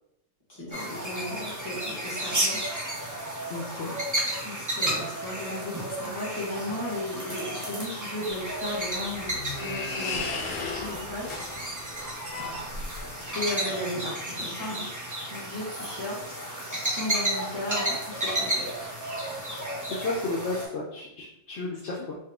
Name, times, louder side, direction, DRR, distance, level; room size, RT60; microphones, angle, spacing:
voice 1, 0.5-2.6 4.4-10.3 10.8-11.4 13.3-14.9 15.3-18.7, left 1 dB, 20° left, -7 dB, 1.6 m, -35 dB
sound 1, 0.7-20.7, right 1 dB, 20° right, 0.5 m, -33 dB
voice 2, 3.5-3.9 19.9-22.2, left 2 dB, 65° left, -5 dB, 0.9 m, -33 dB
sound 2, 8.3-13.3, left 4 dB, 90° left, 1.1 m, -36 dB
4.1 x 2.3 x 3.6 m, 0.81 s
omnidirectional pair, 1.3 m